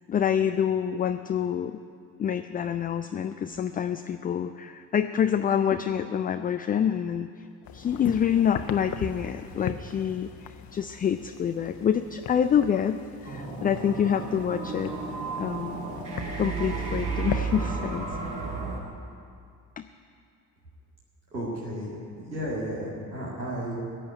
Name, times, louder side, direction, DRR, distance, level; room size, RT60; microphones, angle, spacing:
voice 1, 0.1-1.8 2.2-7.5 7.7-14.9 15.4-15.8 16.4-18.1 19.8-19.9, left 8 dB, 20° left, 8 dB, 0.4 m, -27 dB
sound 1, 7.6-17.7, left 7 dB, 45° left, 1.0 m, -40 dB
sound 2, 13.3-18.8, right 4 dB, 55° right, 3.7 m, -32 dB
voice 2, 21.3-21.9 22.3-23.7, equal, 85° right, -6 dB, 2.1 m, -33 dB
15.0 x 7.8 x 9.7 m, 2.3 s
figure-of-eight pair, 50°, 50 cm